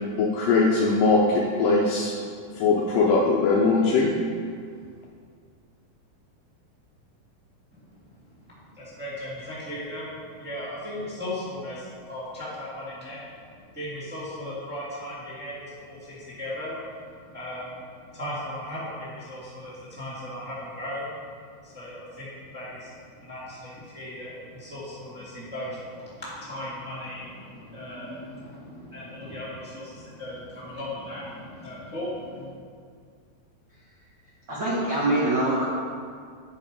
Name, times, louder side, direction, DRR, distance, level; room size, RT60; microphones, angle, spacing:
voice 1, 0.2-2.1 2.6-4.1, left 3 dB, 80° left, -2 dB, 2.0 m, -21 dB
voice 2, 8.7-13.2 13.7-21.1 21.6-32.5, left 1 dB, 5° right, -9 dB, 1.0 m, -37 dB
voice 3, 34.5-35.6, right 1 dB, 75° right, -8 dB, 1.0 m, -24 dB
9.7 x 5.4 x 5.1 m, 2.1 s
omnidirectional pair, 4.6 m